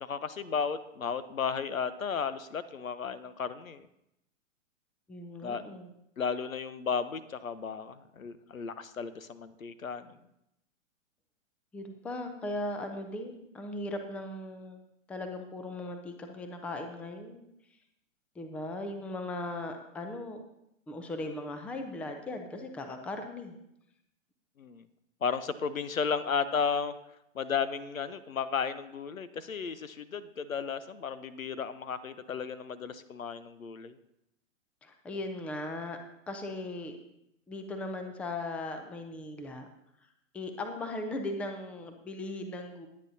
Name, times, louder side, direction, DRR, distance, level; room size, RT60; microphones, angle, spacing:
voice 1, 0.0-3.9 5.4-5.6 6.2-10.2 24.6-24.8 25.2-26.9 27.3-34.0, left 6 dB, 85° left, 14 dB, 0.9 m, -34 dB
voice 2, 5.1-5.9 11.7-14.8 15.1-17.4 18.4-20.4 20.9-23.6 34.8-36.0 36.3-37.0 37.5-39.7 40.3-42.9, left 2 dB, 5° left, 6 dB, 0.4 m, -38 dB
21.0 x 8.6 x 2.7 m, 0.81 s
hypercardioid pair, 120°, 40 cm